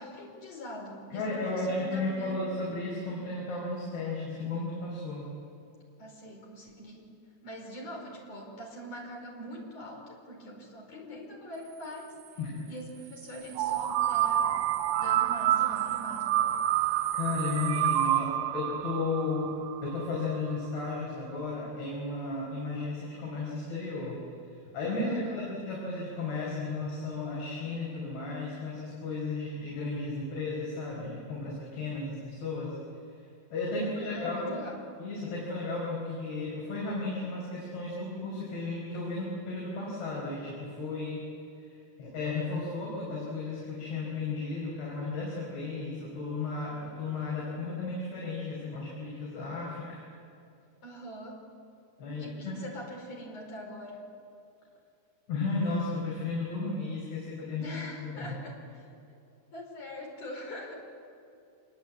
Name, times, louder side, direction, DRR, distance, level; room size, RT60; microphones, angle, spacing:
voice 1, 0.0-2.5 6.0-7.1 7.4-12.1 12.7-14.6 15.0-16.6 25.0-25.6 33.7-34.8 50.8-51.4 52.2-54.1 57.6-58.9 59.5-60.8, equal, 40° left, 0 dB, 6.0 m, -43 dB
voice 2, 1.1-5.3 12.4-12.5 17.1-19.5 19.8-32.8 33.5-34.5 35.0-41.2 41.6-50.0 52.0-52.5 55.3-58.3, left 3 dB, 75° left, -5 dB, 7.4 m, -34 dB
sound 1, 13.6-20.4, right 12 dB, 80° right, 1.9 m, -28 dB
26.5 x 23.0 x 8.6 m, 2.5 s
omnidirectional pair, 4.5 m